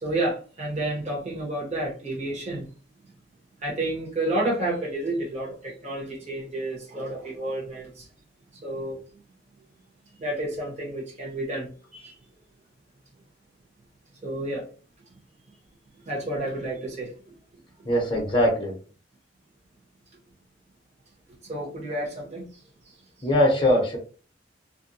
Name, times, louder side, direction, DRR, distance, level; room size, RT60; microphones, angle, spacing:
voice 1, 0.0-2.7 3.0-3.1 3.6-8.1 8.5-9.0 10.2-12.2 14.2-14.7 16.0-17.1 21.4-22.5 23.2-23.3, right 1 dB, 35° right, -4 dB, 1.0 m, -30 dB
voice 2, 17.9-18.7 23.2-24.0, left 1 dB, 25° left, -1 dB, 0.7 m, -21 dB
2.5 x 2.2 x 2.7 m, 0.37 s
head